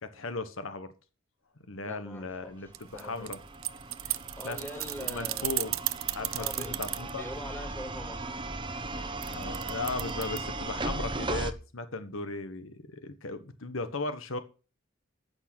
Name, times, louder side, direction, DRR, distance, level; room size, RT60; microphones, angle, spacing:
voice 1, 0.0-0.9 1.7-3.4 4.4-4.6 5.0-5.7 6.1-7.2 9.3-14.4, left 3 dB, 75° left, 10 dB, 1.2 m, -37 dB
voice 2, 1.8-3.4 4.0-5.5 6.4-8.4, left 1 dB, 10° left, 5 dB, 2.5 m, -43 dB
sound 1, 2.7-11.5, right 2 dB, 25° right, 0.9 m, -37 dB
sound 2, 2.7-7.1 9.2-10.4, right 18 dB, 80° right, 0.7 m, -33 dB
14.5 x 6.4 x 6.1 m, 0.34 s
head